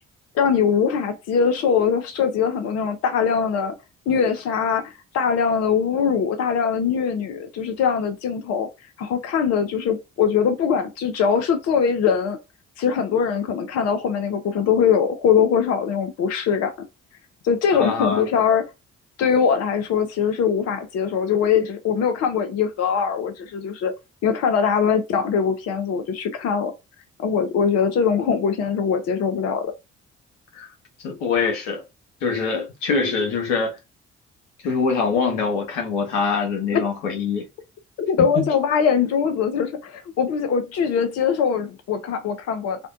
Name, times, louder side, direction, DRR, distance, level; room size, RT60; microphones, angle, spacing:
voice 1, 0.3-3.7 4.1-8.7 9.0-12.4 12.8-16.9 17.4-18.7 19.2-23.9 24.2-26.7 27.2-29.7 36.7-36.9 38.1-42.8, left 7 dB, 45° left, 0.5 m, -22 dB
voice 2, 17.7-18.2 30.5-30.7 31.0-31.8 32.2-33.8 34.6-37.5 38.2-38.4, left 5 dB, 75° left, 0.8 m, -24 dB
2.5 x 2.1 x 2.4 m
figure-of-eight pair, 40°, 36 cm